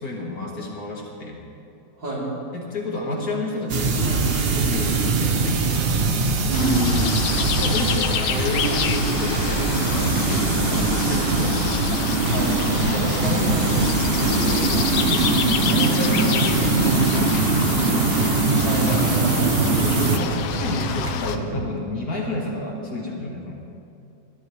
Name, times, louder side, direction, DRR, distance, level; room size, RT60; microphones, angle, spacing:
voice 1, 0.0-1.4 2.5-4.3 4.5-6.0 7.6-10.1 10.7-11.6 12.8-15.3 15.7-17.8 19.8-23.5, left 1 dB, 50° left, -2 dB, 2.2 m, -30 dB
voice 2, 2.0-2.3 6.5-7.8 12.3-12.6 18.6-19.8, right 1 dB, 65° right, -7 dB, 4.4 m, -28 dB
sound 1, 3.7-20.2, right 4 dB, 50° right, 0.7 m, -22 dB
sound 2, 6.5-21.4, left 8 dB, 85° left, 1.6 m, -28 dB
sound 3, 6.7-21.7, right 3 dB, 85° right, 1.8 m, -32 dB
21.5 x 13.5 x 3.3 m, 2.7 s
omnidirectional pair, 2.2 m